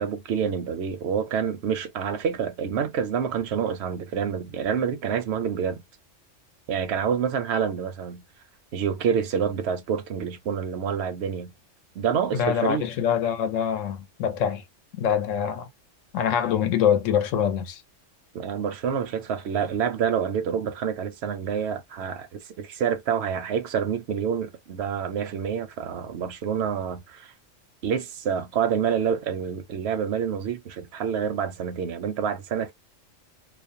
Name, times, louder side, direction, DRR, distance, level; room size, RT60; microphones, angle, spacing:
voice 1, 0.0-5.8 6.7-8.2 8.7-11.5 12.0-12.9 18.3-27.3 27.8-32.7, right 7 dB, 65° right, 0.8 m, -27 dB
voice 2, 12.3-14.6 15.0-15.7 16.1-17.8, left 8 dB, 80° left, 0.9 m, -24 dB
2.4 x 2.1 x 2.5 m
omnidirectional pair, 1.3 m